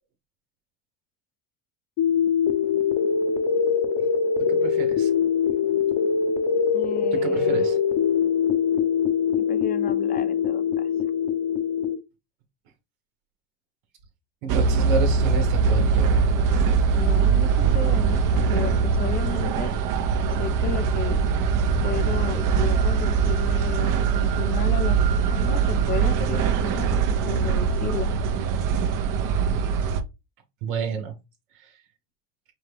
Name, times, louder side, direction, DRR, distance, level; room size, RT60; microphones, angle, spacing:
sound 1, 2.0-12.0, left 7 dB, 55° left, 0.8 m, -23 dB
voice 1, 4.4-5.1 7.1-7.8 14.4-16.1 30.6-31.1 31.5-31.7, right 5 dB, 70° right, 1.1 m, -30 dB
voice 2, 6.7-7.8 9.4-10.9 16.9-19.7 20.2-21.2 21.8-28.1, left 8 dB, 20° left, 0.3 m, -34 dB
sound 2, 14.5-30.0, right 5 dB, 45° right, 0.7 m, -22 dB
5.1 x 2.3 x 3.3 m
supercardioid pair, 95°, 47 cm